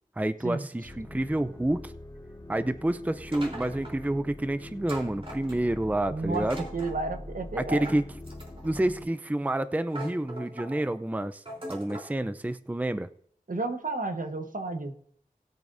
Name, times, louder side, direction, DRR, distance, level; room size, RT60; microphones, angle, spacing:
voice 1, 0.2-1.9 2.5-6.6 7.6-8.0 8.6-11.4 11.7-13.1, right 1 dB, 10° right, 12 dB, 0.5 m, -29 dB
sound 1, 0.8-9.1, left 1 dB, 30° left, 3.1 m, -43 dB
sound 2, 3.3-4.1 4.9-5.8 6.3-7.0 7.8-8.8 9.4-9.5 9.9-10.8 11.5-12.1, right 1 dB, 40° right, 3.6 m, -41 dB
voice 2, 6.1-7.9 13.5-14.9, right 3 dB, 70° right, 6 dB, 1.2 m, -32 dB
19.5 x 8.5 x 2.7 m, 0.65 s
wide cardioid pair, 60°, 14 cm